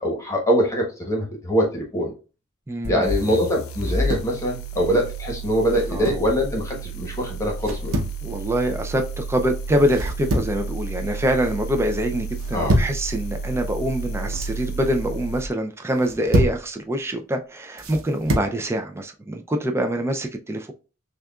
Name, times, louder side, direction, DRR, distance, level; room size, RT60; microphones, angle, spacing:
voice 1, 0.0-2.1 2.8-8.0 12.5-12.8, equal, 15° left, 1.1 m, -23 dB
voice 2, 2.7-3.1 5.9-6.2 8.2-20.7, equal, 10° right, 0.4 m, -25 dB
sound 1, 2.8-15.5, right 2 dB, 85° left, 0.5 m, -31 dB
sound 2, 3.8-4.4 5.7-6.3 7.6-8.2 9.9-10.6 11.0-11.5 12.3-13.0 14.1-14.6 15.9-16.6 17.8-18.5, equal, 85° right, 0.8 m, -26 dB
6.3 x 2.4 x 2.3 m
head